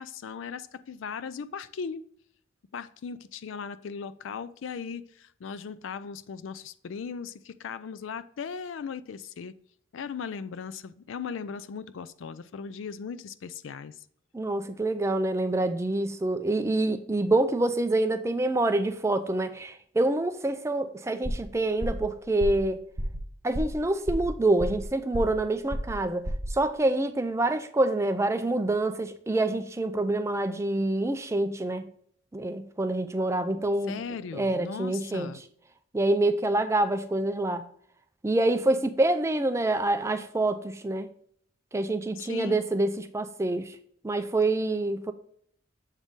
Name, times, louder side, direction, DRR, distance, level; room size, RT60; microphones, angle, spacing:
voice 1, 0.0-2.0 2.7-9.5 9.9-13.9 33.9-35.4 42.2-42.6, left 6 dB, 80° left, 0.4 m, -38 dB
voice 2, 14.3-22.8 23.4-31.9 32.3-34.0 34.3-35.3 35.9-37.6 38.2-41.1 41.7-43.8 44.0-45.1, right 2 dB, 15° right, 0.4 m, -26 dB
sound 1, 21.2-21.5 21.8-22.1 22.4-22.7 23.0-23.2 23.5-23.8 24.1-24.9 25.1-25.4 25.7-26.0 26.3-26.6, equal, 55° right, 1.2 m, -32 dB
7.2 x 3.6 x 4.0 m
head